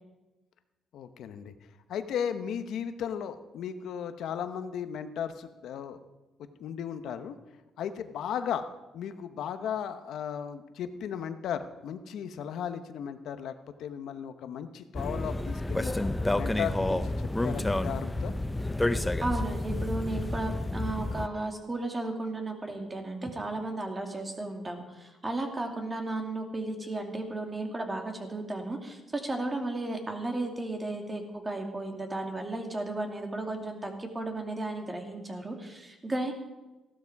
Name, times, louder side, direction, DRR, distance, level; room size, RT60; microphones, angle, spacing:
voice 1, 0.9-1.5 1.9-6.0 6.6-7.4 7.8-8.6 8.9-13.5 13.8-16.0 16.4-18.3, left 8 dB, 75° left, 10 dB, 1.0 m, -35 dB
sound 1, 14.9-21.3, left 2 dB, 10° left, 0.6 m, -30 dB
voice 2, 19.2-36.3, right 2 dB, 25° right, 3 dB, 2.5 m, -34 dB
15.0 x 12.5 x 4.8 m, 1.1 s
cardioid pair, 90°, 0 cm